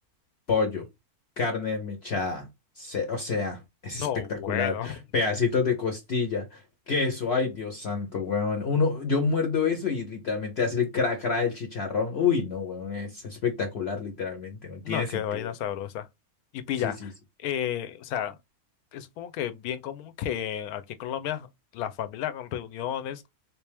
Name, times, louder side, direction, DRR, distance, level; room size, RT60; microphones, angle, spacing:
voice 1, 0.5-0.8 1.4-2.5 2.8-15.5 16.8-17.1, left 5 dB, 55° left, 0.9 m, -28 dB
voice 2, 3.9-4.9 14.8-16.1 16.5-17.1 17.4-18.4 18.9-21.5 21.7-23.3, left 10 dB, 80° left, 1.1 m, -32 dB
3.4 x 2.7 x 3.3 m
omnidirectional pair, 1.6 m